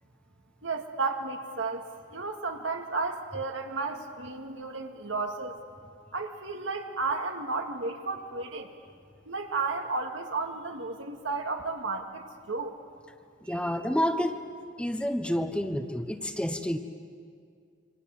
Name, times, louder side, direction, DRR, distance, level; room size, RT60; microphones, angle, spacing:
voice 1, 0.6-5.6 6.1-8.7 9.3-12.7 13.4-13.8, right 3 dB, 85° right, 3 dB, 2.2 m, -33 dB
voice 2, 13.4-14.4 14.8-16.8, equal, 5° left, 7 dB, 1.0 m, -29 dB
28.0 x 25.0 x 8.0 m, 2.3 s
head